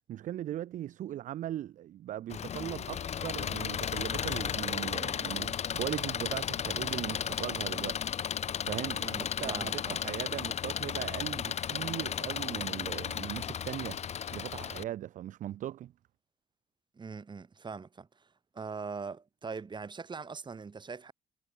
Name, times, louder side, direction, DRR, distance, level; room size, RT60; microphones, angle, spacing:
voice 1, 0.1-8.0 8.6-9.0 9.4-14.0 14.3-15.9, right 12 dB, 50° right, 0.5 m, -39 dB
Engine, 2.3-14.8, left 8 dB, 40° left, 1.0 m, -34 dB
voice 2, 9.0-10.0 16.9-18.3 18.5-21.1, right 5 dB, 25° right, 4.1 m, -42 dB
cardioid pair, 110°, 17 cm